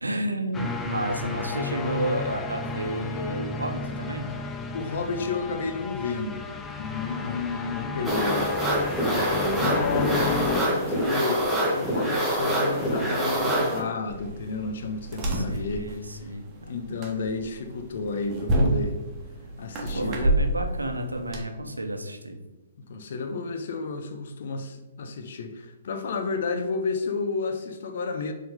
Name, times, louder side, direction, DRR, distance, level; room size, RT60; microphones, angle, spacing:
voice 1, 0.0-4.3 15.2-16.7 19.9-22.4, right 1 dB, 85° right, 4 dB, 0.9 m, -31 dB
sound 1, 0.5-10.6, left 4 dB, 15° left, 0.5 m, -33 dB
voice 2, 4.7-6.4 6.8-8.5 9.0-11.4 11.7-15.9 16.7-19.0 19.6-20.3 22.9-28.3, left 4 dB, 55° left, 6 dB, 0.8 m, -31 dB
sound 2, 8.0-13.8, right 1 dB, 5° right, 1.4 m, -25 dB
sound 3, 14.1-21.4, right 1 dB, 25° right, 1.4 m, -29 dB
6.8 x 3.8 x 3.7 m, 1.1 s
figure-of-eight pair, 120°, 0 cm